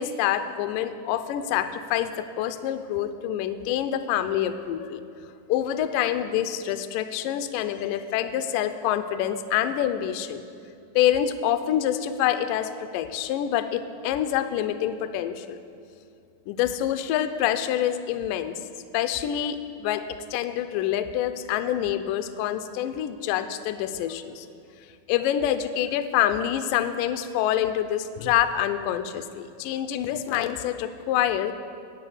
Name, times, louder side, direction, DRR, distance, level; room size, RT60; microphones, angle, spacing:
voice 1, 0.0-5.0 5.5-10.4 11.0-15.6 16.5-18.6 18.9-24.5 25.1-31.5, left 11 dB, 85° left, 10 dB, 1.9 m, -26 dB
9.8 x 9.0 x 7.9 m, 2.5 s
omnidirectional pair, 4.5 m